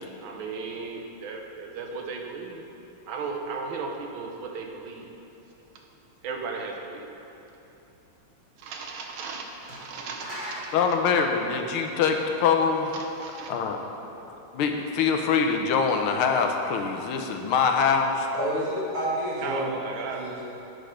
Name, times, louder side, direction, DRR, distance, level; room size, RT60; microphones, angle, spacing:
voice 1, 0.2-2.6 3.1-5.1 6.2-7.0 8.6-10.7 12.9-13.5 19.4-20.3, right 4 dB, 70° right, 2 dB, 1.6 m, -36 dB
sound 1, 9.1-9.2 9.7-12.5, right 1 dB, 40° right, 2.0 m, -40 dB
voice 2, 10.7-12.9 13.5-13.8 14.5-18.3, left 6 dB, 80° left, 4 dB, 1.5 m, -24 dB
voice 3, 18.3-19.8 20.1-20.5, equal, 85° right, -7 dB, 3.1 m, -29 dB
8.8 x 6.4 x 5.1 m, 3.0 s
omnidirectional pair, 2.4 m